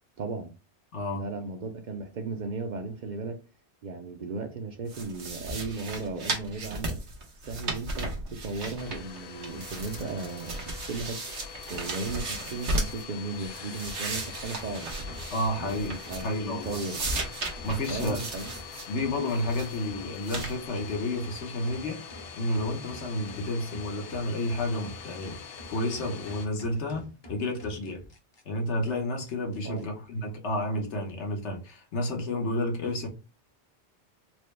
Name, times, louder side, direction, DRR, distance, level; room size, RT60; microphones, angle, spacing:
voice 1, 0.2-0.5 1.1-3.4 3.8-7.0 7.4-11.2 11.7-14.9 15.6-17.1 17.9-18.5 29.6-29.8, right 3 dB, 55° right, 0.5 m, -36 dB
voice 2, 0.9-1.2 15.3-15.9 16.2-16.8 17.6-18.2 18.9-22.0 22.3-25.4 25.7-28.0 28.5-33.1, left 1 dB, 85° left, 1.2 m, -31 dB
sound 1, 4.9-9.2 9.4-13.0 13.4-16.4 16.6-18.9 19.3-19.8 20.2-20.5, right 2 dB, 90° right, 1.2 m, -35 dB
Domestic sounds home sounds, 8.8-26.5, left 7 dB, 65° left, 0.8 m, -44 dB
sound 2, 13.4-28.4 28.8-28.9 29.2-29.8, left 1 dB, 30° left, 0.5 m, -48 dB
4.4 x 2.1 x 3.2 m
omnidirectional pair, 1.1 m